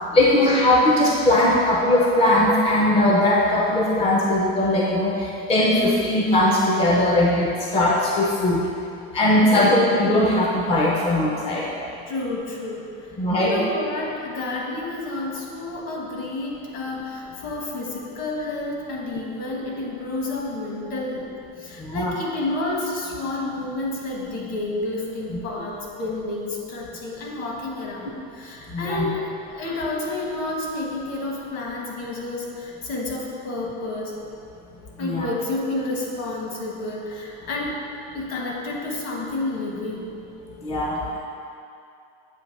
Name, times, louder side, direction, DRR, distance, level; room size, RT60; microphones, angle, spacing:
voice 1, 0.1-8.6 9.1-11.7 13.2-13.6 21.8-22.1 28.7-29.1 35.0-35.3 40.6-41.2, left 1 dB, 20° left, -3 dB, 0.4 m, -19 dB
voice 2, 9.3-9.7 12.1-12.9 13.4-21.3 21.6-34.1 35.0-37.8 38.1-40.1, left 2 dB, 50° left, -2 dB, 1.3 m, -30 dB
7.6 x 2.8 x 5.2 m, 2.6 s
cardioid pair, 145°, 33 cm